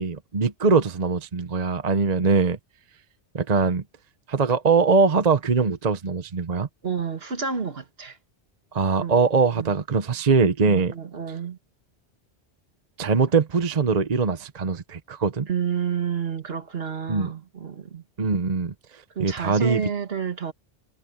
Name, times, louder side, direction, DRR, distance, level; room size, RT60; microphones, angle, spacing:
voice 1, 0.0-2.6 3.3-3.8 4.3-6.7 8.7-10.9 13.0-15.5 17.1-17.3 18.2-19.8, right 4 dB, 40° right, 1.0 m, -22 dB
voice 2, 6.8-8.2 9.0-9.2 9.6-9.7 10.6-11.6 15.5-18.0 19.2-20.5, right 7 dB, 60° right, 1.8 m, -30 dB
omnidirectional pair, 1.1 m